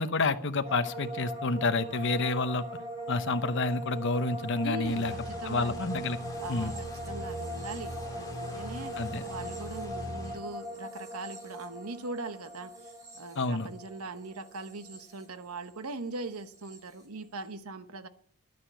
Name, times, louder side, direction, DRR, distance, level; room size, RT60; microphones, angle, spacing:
voice 1, 0.0-2.6 3.1-5.1 5.4-6.2 6.5-6.7 9.0-9.3 13.3-13.7, left 3 dB, 55° left, 0.9 m, -29 dB
sound 1, 0.6-15.9 16.1-16.8, right 1 dB, 15° right, 3.8 m, -41 dB
voice 2, 4.6-5.9 6.4-18.1, right 3 dB, 80° right, 1.1 m, -41 dB
sound 2, 4.8-10.4, equal, 15° left, 2.1 m, -41 dB
11.5 x 9.6 x 8.3 m
head